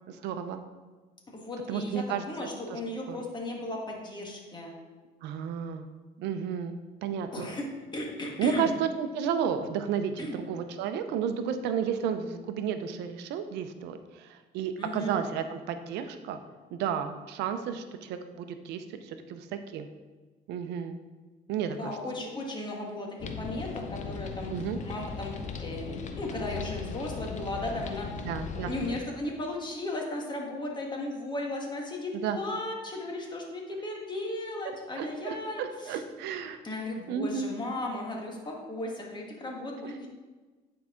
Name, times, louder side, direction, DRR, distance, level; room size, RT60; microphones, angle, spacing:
voice 1, 0.1-0.6 1.7-2.2 2.7-2.8 3.1-3.2 5.2-5.9 6.2-7.5 8.4-16.4 16.7-19.5 19.7-19.9 20.5-21.0 21.5-22.0 24.5-24.8 28.2-28.7 32.1-32.4 35.0-36.6 37.1-37.5 39.8-39.9, right 7 dB, 90° right, 8 dB, 0.6 m, -32 dB
voice 2, 1.3-4.8 7.3-7.6 7.9-8.7 10.2-10.3 14.8-15.2 21.7-24.5 24.8-25.3 25.6-28.1 28.6-35.6 35.9-36.0 36.6-40.1, left 1 dB, 25° left, 0 dB, 1.6 m, -36 dB
sound 1, 23.2-29.0, left 5 dB, 45° left, 0.7 m, -38 dB
9.5 x 4.8 x 3.7 m, 1.3 s
cardioid pair, 110°, 17 cm